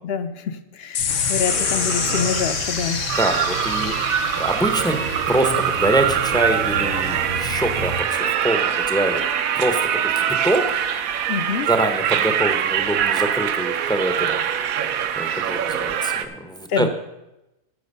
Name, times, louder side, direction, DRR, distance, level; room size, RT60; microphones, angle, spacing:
voice 1, 0.0-3.0 11.3-11.7 16.7-16.9, left 6 dB, 55° left, 11 dB, 0.8 m, -26 dB
sound 1, 0.9-7.7, left 9 dB, 85° left, 0.4 m, -28 dB
sound 2, 1.0-8.0, right 2 dB, 50° right, 1.1 m, -33 dB
sound 3, 1.1-16.3, right 9 dB, 75° right, 1.1 m, -24 dB
voice 2, 3.2-9.2 9.6-10.7 11.7-14.3 15.2-16.9, right 1 dB, 5° left, 6 dB, 0.5 m, -24 dB
12.0 x 7.3 x 5.4 m, 0.94 s
omnidirectional pair, 1.5 m